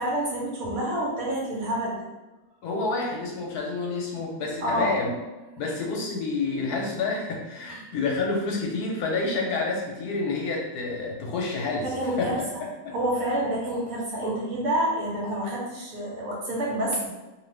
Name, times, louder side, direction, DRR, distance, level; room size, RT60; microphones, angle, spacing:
voice 1, 0.0-2.0 4.6-5.0 7.7-7.8 11.8-12.6 12.9-17.1, right 1 dB, 65° right, -4 dB, 1.1 m, -28 dB
voice 2, 2.6-5.1 5.6-11.9 12.2-12.5 12.8-13.0, left 3 dB, 70° left, 0 dB, 1.0 m, -28 dB
2.6 x 2.4 x 3.2 m, 1.1 s
omnidirectional pair, 1.8 m